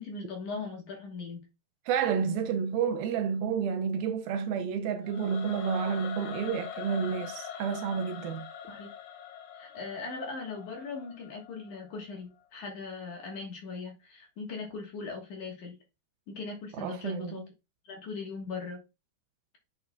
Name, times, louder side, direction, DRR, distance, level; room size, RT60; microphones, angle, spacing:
voice 1, 0.0-1.4 8.7-8.9 9.5-15.8 16.3-17.4 17.8-18.8, left 4 dB, 60° left, 2.4 m, -39 dB
voice 2, 1.9-8.5 16.8-17.5, right 7 dB, 80° right, 2.3 m, -30 dB
Singing / Musical instrument, 5.0-12.1, left 8 dB, 85° left, 3.1 m, -43 dB
8.6 x 6.6 x 2.3 m
omnidirectional pair, 4.6 m